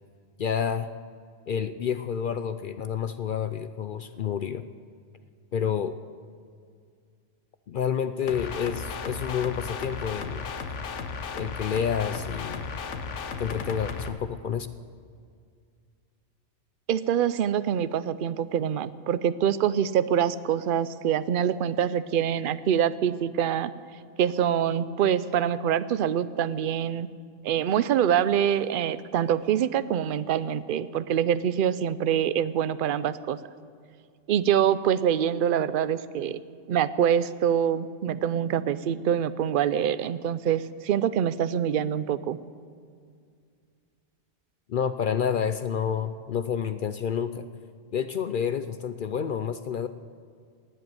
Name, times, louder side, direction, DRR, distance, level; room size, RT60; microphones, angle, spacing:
voice 1, 0.4-0.9 1.5-4.6 5.5-6.0 7.7-10.5 11.3-12.7 13.4-14.7 44.7-47.5 47.9-49.9, left 7 dB, 60° left, 12 dB, 0.6 m, -29 dB
sound 1, 8.3-14.1, left 5 dB, 80° left, 1.3 m, -35 dB
voice 2, 16.9-23.7 24.2-27.1 27.4-33.4 34.3-36.4 36.7-42.4, right 9 dB, 55° right, 15 dB, 0.6 m, -25 dB
18.5 x 7.9 x 9.3 m, 2.2 s
omnidirectional pair, 1.2 m